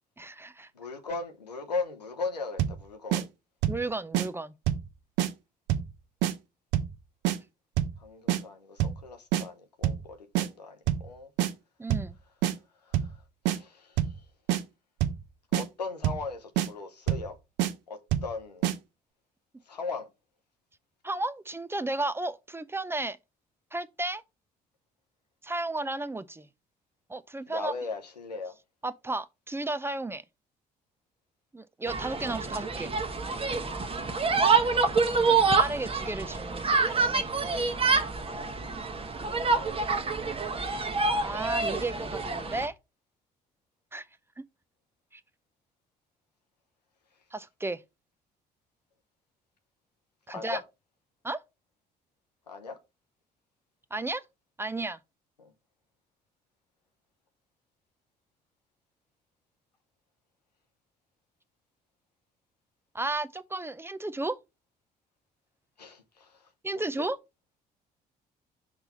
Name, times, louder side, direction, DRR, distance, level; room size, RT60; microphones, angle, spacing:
voice 1, 0.2-0.7 3.7-4.5 11.8-12.2 21.0-23.2 23.7-24.2 25.4-26.5 27.1-27.7 28.8-30.2 31.5-32.9 35.1-37.3 41.1-42.7 43.9-44.1 44.4-44.5 45.1-45.2 47.3-47.8 50.3-50.6 51.2-51.4 53.9-54.2 54.6-55.0 62.9-64.4 66.6-67.2, right 2 dB, 10° right, 0.5 m, -33 dB
voice 2, 0.7-3.3 8.0-11.3 12.8-13.2 13.5-14.2 15.5-17.4 17.9-18.7 19.7-20.1 27.5-28.5 50.3-50.6 52.5-52.8 55.4-55.5 65.8-66.5 66.7-67.0, left 4 dB, 85° left, 0.8 m, -38 dB
sound 1, 2.6-2.8 3.1-3.2 3.6-3.8 4.1-4.3 4.7-4.9 5.2-5.3 5.7-5.9 6.2-6.3 6.7-6.9 7.2-7.4 7.8-8.0 8.3-8.4 8.8-9.0 9.3-9.4 9.8-10.1 10.3-10.5 10.9-11.1 11.4-11.5 11.9-12.1 12.4-12.5 12.9-13.2 13.5-13.6 14.0-14.2 14.5-14.6 15.0-15.2 15.5-15.6 16.0-16.3 16.6-16.7 17.1-17.3 17.6-17.7 18.1-18.3 18.6-18.8, right 12 dB, 60° right, 0.7 m, -26 dB
sound 2, 31.9-42.7, right 4 dB, 25° right, 1.1 m, -27 dB
6.0 x 3.3 x 5.4 m
figure-of-eight pair, 50°, 21 cm